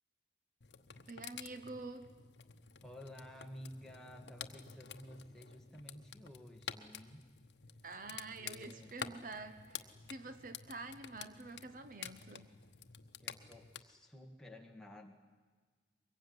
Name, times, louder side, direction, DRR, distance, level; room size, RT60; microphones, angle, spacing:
sound 1, 0.6-13.8, left 7 dB, 70° left, 1.0 m, -50 dB
voice 1, 1.1-2.1 7.8-12.5, right 3 dB, 45° right, 10 dB, 1.0 m, -48 dB
voice 2, 2.8-7.2 8.1-8.9 13.2-15.1, equal, 5° left, 1 dB, 2.2 m, -53 dB
23.5 x 21.5 x 9.7 m, 1.4 s
head